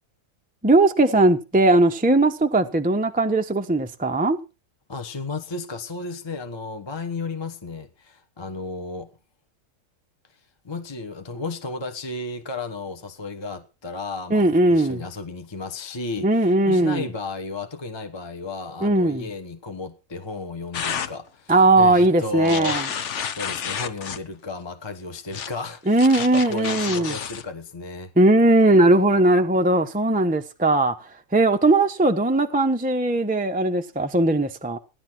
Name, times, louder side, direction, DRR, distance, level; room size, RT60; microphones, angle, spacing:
voice 1, 0.6-4.4 14.3-15.0 16.2-17.1 18.8-19.3 21.5-22.8 25.9-27.1 28.2-30.9 31.3-34.8, right 2 dB, 10° right, 0.6 m, -19 dB
voice 2, 4.9-9.1 10.6-22.9 23.3-28.1, left 3 dB, 20° left, 1.0 m, -33 dB
sound 1, 20.7-21.1 22.4-24.2 25.3-25.5 26.0-27.4, left 7 dB, 55° left, 1.1 m, -30 dB
15.5 x 11.0 x 4.5 m
omnidirectional pair, 1.7 m